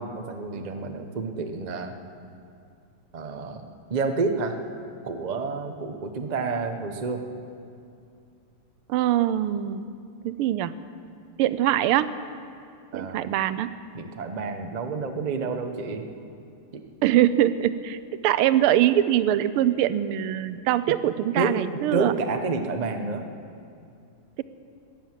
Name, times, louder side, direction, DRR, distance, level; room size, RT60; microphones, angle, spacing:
voice 1, 0.0-1.9 3.1-4.6 5.0-7.2 12.9-13.3 13.9-16.0 16.7-16.8 21.3-21.6 21.9-23.2, right 4 dB, 55° right, 6 dB, 0.4 m, -29 dB
voice 2, 8.9-9.9 10.2-10.7 11.4-12.1 12.9-13.7 17.0-22.1, right 12 dB, 85° right, 14 dB, 1.5 m, -23 dB
16.5 x 11.0 x 7.4 m, 2.4 s
omnidirectional pair, 2.4 m